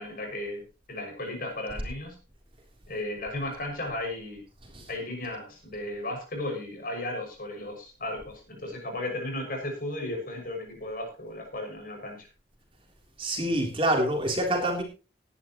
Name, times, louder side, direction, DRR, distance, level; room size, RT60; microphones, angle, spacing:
voice 1, 0.0-2.2 2.9-4.4 4.9-12.3, left 1 dB, 55° left, 2 dB, 6.6 m, -35 dB
voice 2, 13.2-14.8, right 1 dB, 30° right, 0 dB, 3.6 m, -26 dB
19.0 x 11.0 x 3.1 m, 0.33 s
head